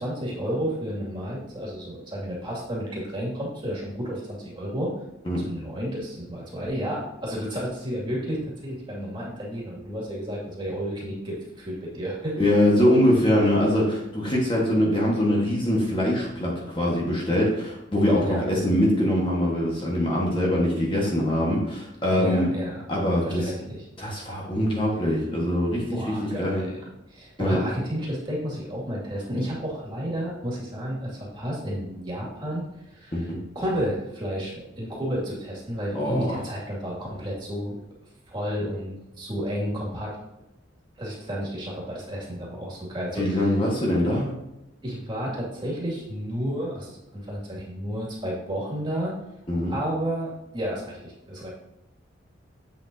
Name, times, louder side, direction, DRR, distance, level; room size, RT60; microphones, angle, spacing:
voice 1, 0.0-4.9 5.4-12.4 18.2-18.4 22.2-22.7 23.2-23.8 25.9-32.6 32.9-33.3 33.5-37.8 38.3-40.1 41.0-43.6 44.8-49.1 49.7-51.5, equal, 25° right, -5 dB, 2.2 m, -31 dB
voice 2, 12.4-22.5 22.9-23.5 24.0-26.6 27.4-27.6 33.1-33.4 35.9-36.4 43.1-44.3 49.5-49.7, left 1 dB, 25° left, -3 dB, 1.5 m, -23 dB
7.9 x 7.2 x 2.8 m, 0.91 s
head